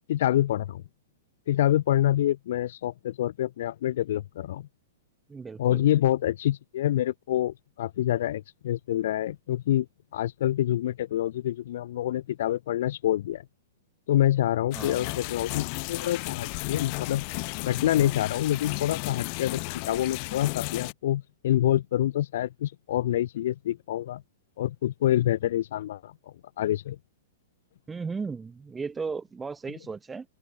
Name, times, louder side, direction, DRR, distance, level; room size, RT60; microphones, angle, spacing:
voice 1, 0.1-0.8 1.5-4.7 5.6-9.9 10.1-13.4 14.1-17.2 17.6-24.2 24.6-26.1 26.6-27.0, left 12 dB, 50° left, 2.2 m, -26 dB
voice 2, 5.3-5.8 14.7-15.1 27.9-30.3, right 5 dB, 5° right, 5.7 m, -35 dB
sound 1, 14.7-20.9, left 40 dB or more, 30° left, 2.7 m, -34 dB
open air
hypercardioid pair, 180°, 0 cm